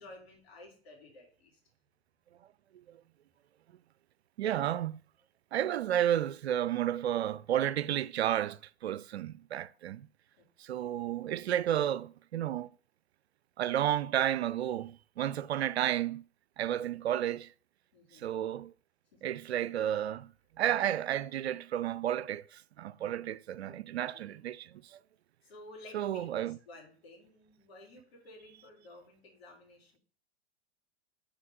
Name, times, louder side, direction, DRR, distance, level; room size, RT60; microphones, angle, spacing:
voice 1, 0.0-1.6 10.3-10.9 17.9-18.4 23.6-23.8 24.1-24.4 25.4-30.0, left 2 dB, 70° left, 3.2 m, -53 dB
voice 2, 4.4-5.0 5.5-10.1 10.6-12.7 13.6-16.2 16.6-17.5 18.1-18.7 19.2-20.3 20.6-25.0 25.9-26.6, right 11 dB, 85° right, 0.5 m, -32 dB
5.2 x 4.3 x 5.2 m
hypercardioid pair, 100°, 31 cm